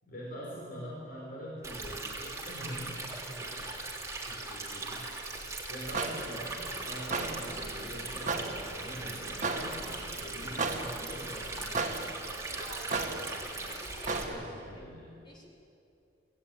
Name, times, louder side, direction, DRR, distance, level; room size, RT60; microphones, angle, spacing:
voice 1, 0.0-3.9 4.3-5.1 5.7-11.9 14.3-15.1, equal, 55° left, -5 dB, 6.0 m, -44 dB
Stream, 1.6-14.2, right 2 dB, 15° right, 3.2 m, -39 dB
sound 1, 5.8-14.8, right 3 dB, 45° right, 1.8 m, -37 dB
voice 2, 12.5-14.6 15.2-15.5, equal, 25° left, -3 dB, 4.5 m, -51 dB
26.0 x 16.5 x 9.0 m, 2.6 s
head